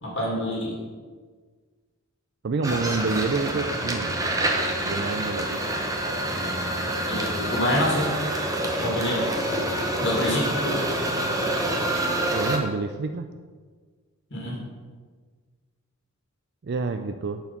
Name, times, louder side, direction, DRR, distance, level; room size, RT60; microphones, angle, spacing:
voice 1, 0.0-0.7 7.1-8.1 8.8-9.3 10.0-10.8 14.3-14.5, left 1 dB, 55° left, -3 dB, 2.5 m, -26 dB
voice 2, 2.4-4.1 4.8-5.6 8.8-8.9 12.3-13.3 16.6-17.4, right 4 dB, 50° right, 8 dB, 0.4 m, -28 dB
sound 1, 2.6-12.6, right 1 dB, 15° right, 0.9 m, -27 dB
10.5 x 4.6 x 5.9 m, 1.5 s
head